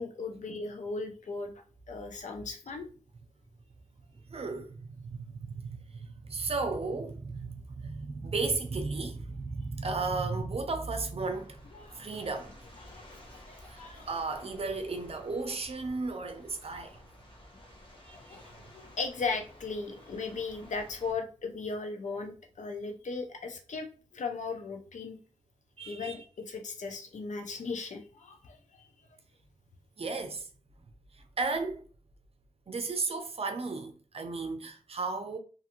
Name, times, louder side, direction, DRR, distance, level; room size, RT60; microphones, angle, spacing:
voice 1, 0.0-1.5 1.9-2.9 11.7-12.0 12.8-13.2 13.5-14.1 18.3-23.9 24.1-25.2 25.9-28.6, left 4 dB, 75° left, 0.5 m, -37 dB
voice 2, 4.3-11.6 11.9-12.5 13.7-17.0 18.0-18.5 25.8-26.2 30.0-30.5 30.8-30.9 31.1-31.8 32.7-35.4, right 3 dB, 50° right, 0.5 m, -34 dB
sound 1, 11.2-21.1, left 1 dB, 40° left, 0.9 m, -53 dB
2.6 x 2.5 x 2.8 m
wide cardioid pair, 75°, 13 cm